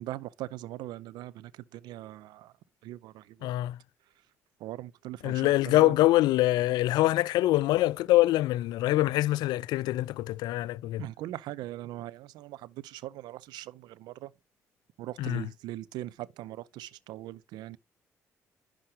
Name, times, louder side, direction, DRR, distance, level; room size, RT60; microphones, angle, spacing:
voice 1, 0.0-2.5 2.8-3.5 4.6-5.9 11.0-14.3 15.0-17.8, right 15 dB, 65° right, 0.5 m, -40 dB
voice 2, 3.4-3.8 5.2-11.1 15.2-15.5, left 16 dB, 60° left, 0.3 m, -24 dB
11.0 x 5.0 x 3.1 m
figure-of-eight pair, 45°, 8 cm